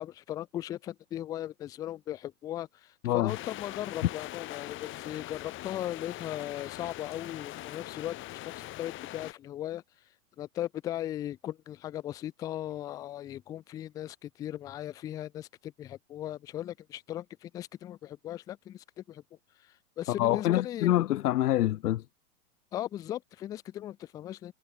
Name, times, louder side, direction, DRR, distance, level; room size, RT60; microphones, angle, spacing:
voice 1, 0.0-2.7 3.1-9.8 10.4-19.2 20.0-21.0 22.7-24.5, left 12 dB, 10° left, 0.5 m, -38 dB
voice 2, 3.0-3.4 20.1-22.0, left 14 dB, 80° left, 0.7 m, -26 dB
sound 1, 3.3-9.3, left 16 dB, 25° left, 4.3 m, -42 dB
hypercardioid pair, 150°, 46 cm